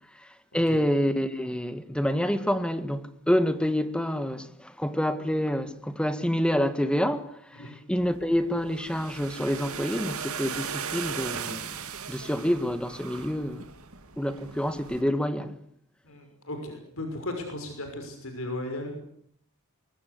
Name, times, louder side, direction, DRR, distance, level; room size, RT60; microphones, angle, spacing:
voice 1, 0.5-7.3 7.6-11.8 12.1-13.6 14.2-15.6, equal, 5° left, 1.7 m, -27 dB
sound 1, 8.0-15.0, right 7 dB, 90° right, 2.4 m, -38 dB
voice 2, 16.0-19.0, left 1 dB, 70° left, 6.1 m, -36 dB
24.0 x 22.5 x 8.2 m
head